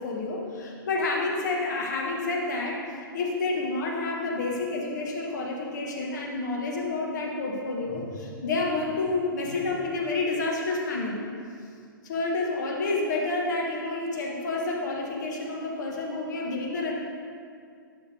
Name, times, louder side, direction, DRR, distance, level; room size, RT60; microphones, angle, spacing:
voice 1, 0.0-2.8 3.1-11.2 12.0-16.9, left 3 dB, 55° left, -1 dB, 1.5 m, -29 dB
11.5 x 6.0 x 3.4 m, 2.3 s
figure-of-eight pair, 110°, 11 cm